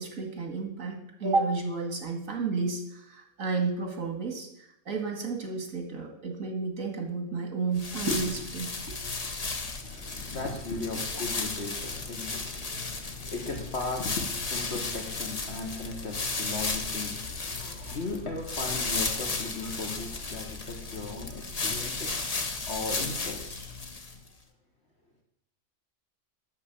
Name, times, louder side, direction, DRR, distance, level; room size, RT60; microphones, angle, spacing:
voice 1, 0.0-9.0, right 4 dB, 80° right, 3 dB, 2.4 m, -31 dB
sound 1, 7.8-24.3, left 3 dB, 30° left, 1.0 m, -34 dB
voice 2, 9.8-23.9, left 3 dB, 55° left, 2 dB, 1.6 m, -37 dB
8.4 x 6.6 x 8.3 m, 0.78 s
omnidirectional pair, 1.4 m